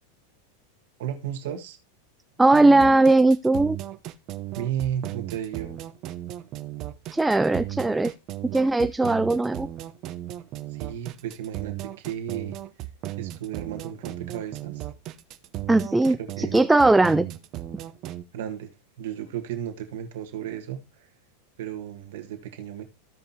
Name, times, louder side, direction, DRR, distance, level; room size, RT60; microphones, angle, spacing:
voice 1, 1.0-1.8 4.5-5.8 10.7-12.9 13.2-14.9 16.2-16.6 18.3-18.7 19.0-21.1 21.6-22.8, right 10 dB, 65° right, 1.7 m, -34 dB
voice 2, 2.4-3.8 7.1-8.1 8.4-9.7 15.7-17.3, right 2 dB, 10° right, 0.4 m, -19 dB
sound 1, 2.5-18.2, right 14 dB, 45° right, 0.8 m, -36 dB
15.0 x 5.3 x 2.8 m
hypercardioid pair, 95°, 0 cm